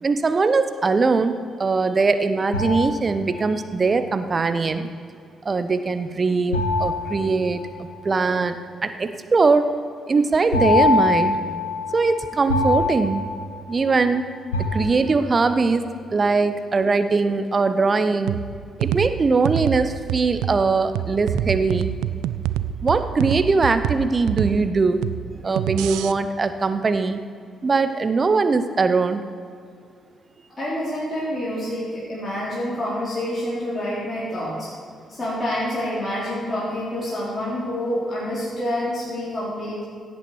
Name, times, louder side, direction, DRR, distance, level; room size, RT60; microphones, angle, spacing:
voice 1, 0.0-4.9 5.4-7.6 8.0-8.6 8.8-9.8 10.1-11.4 11.9-13.2 13.7-14.2 14.7-15.8 16.1-18.4 18.8-21.9 22.8-25.0 25.4-27.2 27.6-29.2, right 4 dB, 35° right, 10 dB, 0.8 m, -21 dB
sound 1, 2.5-3.7 6.5-8.2 10.5-14.1 14.5-15.5, left 3 dB, 80° left, 1.0 m, -24 dB
sound 2, 18.3-26.1, right 12 dB, 65° right, 0.3 m, -27 dB
voice 2, 30.6-34.7 35.1-39.9, left 1 dB, 25° left, -8 dB, 3.7 m, -27 dB
17.0 x 8.5 x 4.8 m, 2.3 s
figure-of-eight pair, 40°, 0 cm